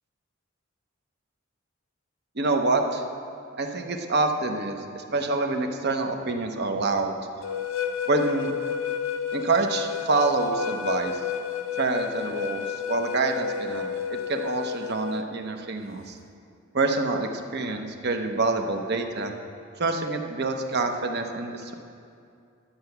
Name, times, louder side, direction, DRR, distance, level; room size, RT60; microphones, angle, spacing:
voice 1, 2.4-3.0 3.6-7.1 8.1-8.5 9.3-11.2 11.8-16.2 16.7-19.3 19.8-21.7, right 3 dB, 55° right, 5 dB, 0.9 m, -26 dB
sound 1, 7.4-15.2, left 7 dB, 85° left, 0.6 m, -31 dB
12.0 x 5.8 x 7.9 m, 2.4 s
head